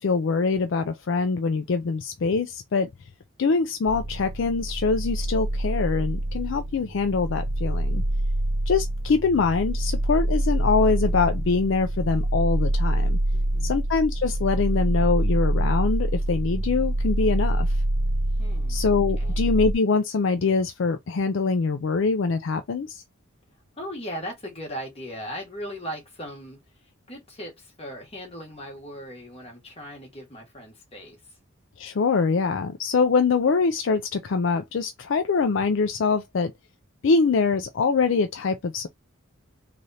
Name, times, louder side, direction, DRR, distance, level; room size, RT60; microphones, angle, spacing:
voice 1, 0.0-2.9 3.4-8.0 8.7-13.2 13.6-17.7 18.7-23.0 31.8-36.5 37.0-38.9, left 4 dB, 65° left, 0.4 m, -24 dB
sound 1, 3.9-19.7, right 1 dB, 85° right, 0.7 m, -25 dB
voice 2, 13.3-13.8 18.4-18.8 19.2-19.4 23.8-31.4, equal, 30° left, 1.5 m, -38 dB
3.3 x 2.5 x 4.1 m
head